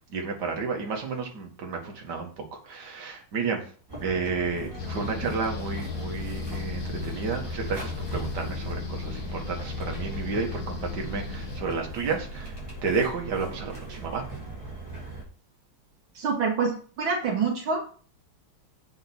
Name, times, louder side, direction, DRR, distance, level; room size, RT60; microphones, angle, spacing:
voice 1, 0.1-2.3 2.7-3.7 4.0-12.5 12.8-14.2, right 4 dB, 55° right, 2 dB, 2.2 m, -31 dB
sound 1, 3.9-15.2, right 1 dB, 10° right, 4.1 m, -38 dB
sound 2, 4.8-11.6, left 5 dB, 65° left, 2.4 m, -36 dB
voice 2, 16.2-17.8, right 5 dB, 70° right, 1 dB, 2.1 m, -26 dB
7.9 x 5.6 x 6.1 m, 0.42 s
omnidirectional pair, 2.3 m